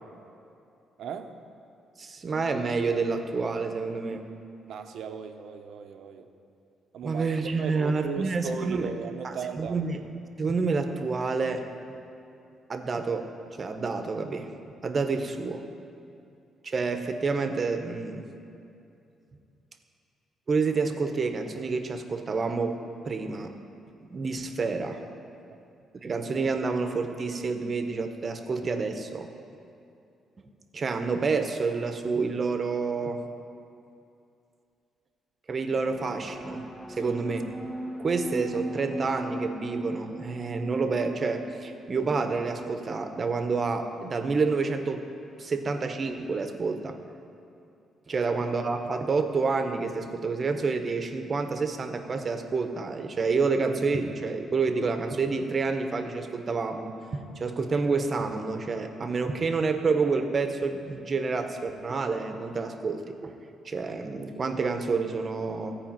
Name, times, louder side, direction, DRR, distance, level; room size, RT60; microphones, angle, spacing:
voice 1, 1.0-1.3 4.7-6.3 6.9-7.3 7.6-9.8 37.0-37.2, right 7 dB, 75° right, 6 dB, 0.8 m, -36 dB
voice 2, 2.0-4.2 7.0-8.9 9.2-10.0 10.4-11.7 12.7-13.3 13.6-14.5 14.8-15.6 16.6-18.3 20.5-22.8 23.0-23.5 24.1-25.0 26.0-29.3 30.7-33.2 35.5-37.4 38.0-45.0 45.4-47.0 48.1-63.3 63.6-65.7, right 4 dB, 40° right, 7 dB, 1.0 m, -28 dB
sound 1, 35.7-43.3, right 1 dB, 25° left, 1.4 m, -38 dB
14.5 x 5.0 x 8.8 m, 2.6 s
cardioid pair, 90°, 0 cm